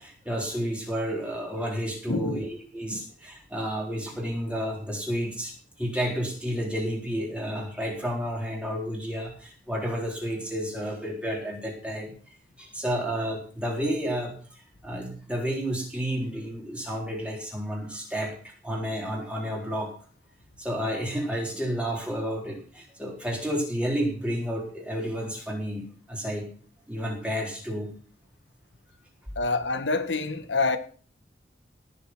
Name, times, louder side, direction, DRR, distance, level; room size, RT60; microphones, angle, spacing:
voice 1, 0.0-12.1 12.6-19.9 20.6-26.5 26.9-27.9, equal, 5° right, 3.9 m, -31 dB
voice 2, 2.1-2.5 2.9-3.0 29.3-30.8, left 3 dB, 85° left, 1.4 m, -27 dB
18.0 x 7.0 x 6.1 m
head